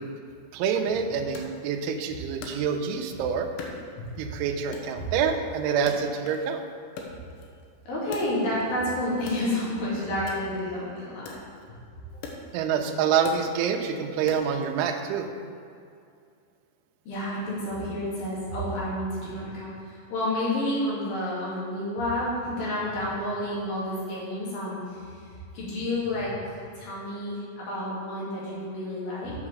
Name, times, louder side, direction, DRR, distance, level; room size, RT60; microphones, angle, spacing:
voice 1, 0.5-3.5 4.2-6.6 12.5-15.3, right 7 dB, 80° right, 4 dB, 2.5 m, -27 dB
Wood, 1.4-3.1 3.6-4.3 4.7-6.6 6.8-8.8 9.2-14.7, left 4 dB, 85° left, 3.3 m, -43 dB
voice 2, 7.9-11.4 17.1-29.3, left 1 dB, 60° left, -7 dB, 3.8 m, -30 dB
7.4 x 6.0 x 6.3 m, 2.4 s
omnidirectional pair, 5.1 m